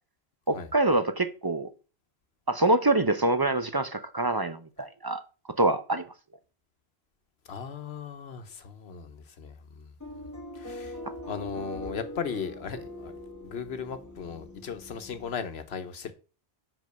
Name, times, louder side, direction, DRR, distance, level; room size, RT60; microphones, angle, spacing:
voice 1, 0.5-1.7 2.5-5.2 5.6-6.0, right 2 dB, 25° right, 0.6 m, -25 dB
voice 2, 7.5-9.9 10.5-11.0 11.2-13.1 13.4-16.1, left 6 dB, 80° left, 1.2 m, -37 dB
sound 1, 10.0-15.4, left 1 dB, 15° left, 1.8 m, -42 dB
5.6 x 5.3 x 6.6 m
omnidirectional pair, 1.1 m